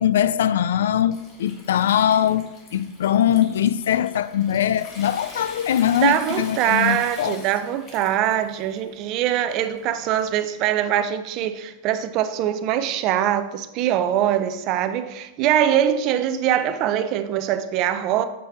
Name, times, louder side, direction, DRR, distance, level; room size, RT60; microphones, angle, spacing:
voice 1, 0.0-7.4, left 10 dB, 85° left, 0.4 m, -21 dB
Water tap faucet / Sink (filling or washing) / Trickle dribble, 0.6-10.6, left 2 dB, 30° left, 2.0 m, -44 dB
voice 2, 6.0-18.2, right 10 dB, 40° right, 0.6 m, -22 dB
7.5 x 5.4 x 4.4 m
supercardioid pair, 150°, 0 cm